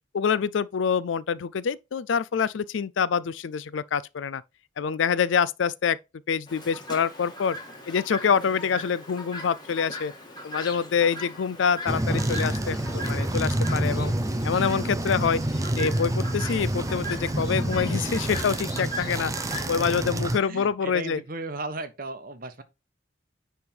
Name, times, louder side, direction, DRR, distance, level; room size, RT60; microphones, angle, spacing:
voice 1, 0.1-4.4 4.8-6.0 6.3-7.6 7.9-10.1 10.4-14.1 14.4-15.4 15.8-21.2, left 6 dB, 80° left, 0.4 m, -26 dB
Chirp tweet, 6.5-20.0, left 1 dB, 20° left, 1.9 m, -39 dB
sound 1, 11.9-20.4, right 1 dB, 15° right, 0.5 m, -28 dB
voice 2, 20.4-22.6, right 2 dB, 50° right, 1.0 m, -36 dB
9.6 x 3.5 x 4.4 m
head